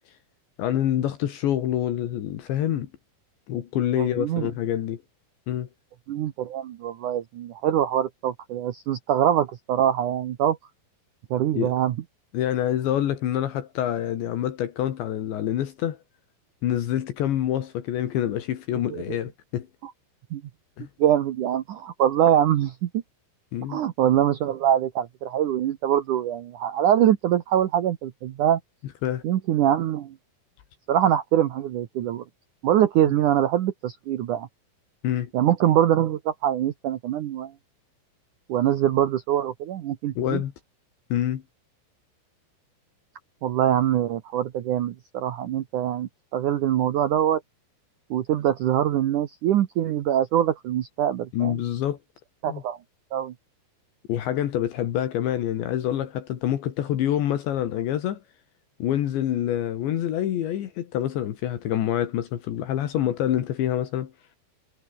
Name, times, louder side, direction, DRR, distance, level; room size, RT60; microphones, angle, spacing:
voice 1, 0.6-2.9 3.5-5.0 5.5-5.7 11.5-11.7 12.3-16.0 16.6-19.7 20.8-20.9 23.5-23.8 29.0-29.2 35.0-35.3 40.2-40.5 41.1-41.4 51.3-52.0 52.5-52.6 54.1-58.2 58.8-64.1, left 11 dB, 75° left, 4.1 m, -26 dB
voice 2, 4.0-4.5 6.1-10.6 11.3-12.0 18.9-19.2 19.8-19.9 20.3-20.4 21.0-23.0 23.7-28.6 29.2-30.2 30.9-32.2 32.6-34.5 35.3-37.5 38.5-40.4 43.4-47.4 48.1-51.6 52.4-52.8 53.1-53.3, right 11 dB, 85° right, 1.7 m, -23 dB
omnidirectional pair, 5.4 m